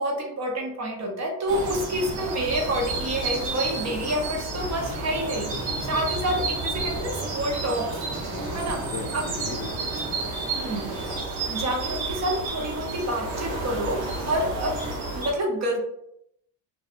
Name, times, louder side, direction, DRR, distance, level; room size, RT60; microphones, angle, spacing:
voice 1, 0.0-8.0 8.5-8.8 9.1-9.2 10.5-10.9 11.5-14.7 15.1-15.8, right 1 dB, 40° right, 1 dB, 0.6 m, -28 dB
sound 1, 1.5-15.3, right 3 dB, 85° right, 0.8 m, -31 dB
voice 2, 5.5-6.0 8.3-11.1 14.2-14.4, left 5 dB, 50° left, 3 dB, 0.5 m, -41 dB
2.6 x 2.3 x 2.4 m, 0.75 s
cardioid pair, 115°, 45 cm